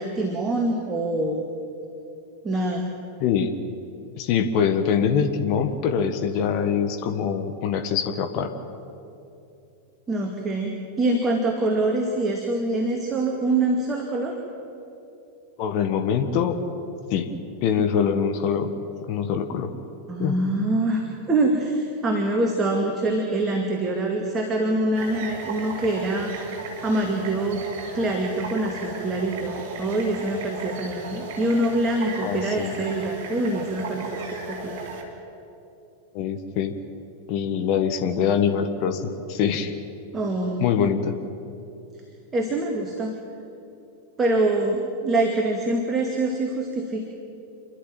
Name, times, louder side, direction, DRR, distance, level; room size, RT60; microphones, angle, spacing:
voice 1, 0.0-1.4 2.4-2.9 10.1-14.4 20.1-26.3 26.8-27.7 27.9-34.8 40.1-40.7 42.3-43.2 44.2-47.1, right 2 dB, 20° right, 1 dB, 2.3 m, -25 dB
voice 2, 3.2-3.5 4.1-8.5 15.6-16.5 17.1-17.3 17.6-18.7 19.1-19.7 20.2-20.4 32.2-32.7 36.1-36.7 37.3-39.7 40.6-41.2, left 7 dB, 45° left, 7 dB, 1.6 m, -24 dB
sound 1, 24.9-35.0, right 3 dB, 50° right, 4.2 m, -35 dB
28.0 x 12.0 x 9.0 m, 2.7 s
figure-of-eight pair, 90°, 0 cm